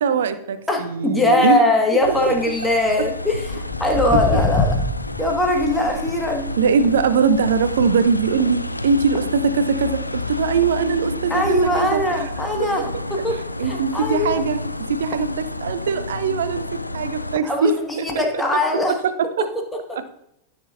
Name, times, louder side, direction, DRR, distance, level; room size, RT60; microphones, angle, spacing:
voice 1, 0.0-1.6 1.9-2.0 2.3-2.4 6.6-12.3 12.6-12.7 13.6-14.6 14.9-16.6 16.9-18.2 19.0-19.5 19.9-20.0, right 5 dB, 60° right, 12 dB, 0.6 m, -21 dB
voice 2, 0.7-4.7 5.2-6.5 11.3-12.8 13.1-13.4 13.6-14.4 17.4-17.7 18.0-18.9 19.4-19.5 19.9-20.0, left 1 dB, 5° left, 1 dB, 1.7 m, -21 dB
sound 1, 2.0-17.4, left 2 dB, 85° left, 0.3 m, -30 dB
Walk footsteps, 3.4-10.1 10.4-10.8 11.3-11.4 12.1-12.2 12.6-12.7 12.9-13.0 13.5-13.7 14.4-16.0 16.5-16.6 17.4-17.5 17.9-18.1 18.8-18.9, left 3 dB, 20° left, 1.2 m, -28 dB
14.0 x 6.1 x 2.6 m, 0.79 s
figure-of-eight pair, 90°, 0 cm